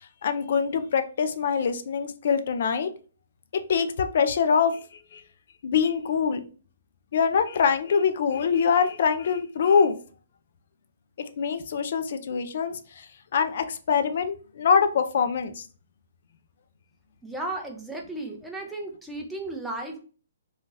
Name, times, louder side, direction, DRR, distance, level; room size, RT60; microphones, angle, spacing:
voice 1, 0.2-2.9 3.7-5.2 5.6-6.4 7.1-10.0 11.4-13.1 13.3-15.6, left 6 dB, 55° left, 8 dB, 0.4 m, -24 dB
voice 2, 17.2-20.0, right 2 dB, ahead, 0 dB, 0.5 m, -34 dB
2.8 x 2.3 x 3.0 m, 0.39 s
hypercardioid pair, 155°, 0 cm